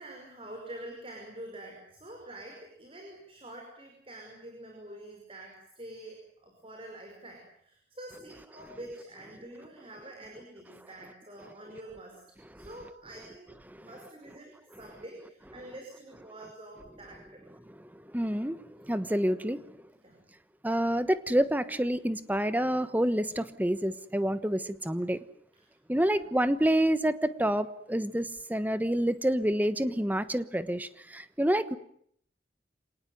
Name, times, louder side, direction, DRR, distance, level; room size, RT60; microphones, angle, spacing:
voice 1, 0.0-13.5 13.7-14.5 14.8-17.4 20.0-20.2 25.5-25.7 26.0-26.3, right 1 dB, 30° right, 2 dB, 5.5 m, -46 dB
voice 2, 17.9-19.6 20.6-25.2 25.9-31.8, right 1 dB, 10° right, 13 dB, 1.2 m, -28 dB
26.5 x 19.0 x 9.3 m, 0.68 s
head